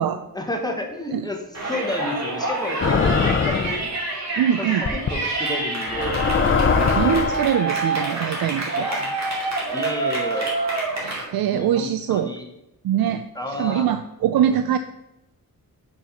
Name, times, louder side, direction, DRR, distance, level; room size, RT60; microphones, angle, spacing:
voice 1, 0.3-3.9 4.6-4.7 4.9-6.2 8.9-9.1 9.7-10.5 11.5-12.5 13.3-13.9, left 1 dB, 10° left, 2 dB, 1.0 m, -30 dB
Yell, 1.5-11.2, right 2 dB, 45° right, 2.6 m, -27 dB
sound 1, 2.8-3.9 4.9-5.1 5.9-7.5, left 5 dB, 35° left, 0.6 m, -21 dB
voice 2, 4.4-4.9 7.0-8.9 10.9-12.3 12.8-14.8, right 10 dB, 75° right, 10 dB, 0.5 m, -23 dB
6.2 x 6.2 x 5.7 m, 0.91 s
wide cardioid pair, 165°, 36 cm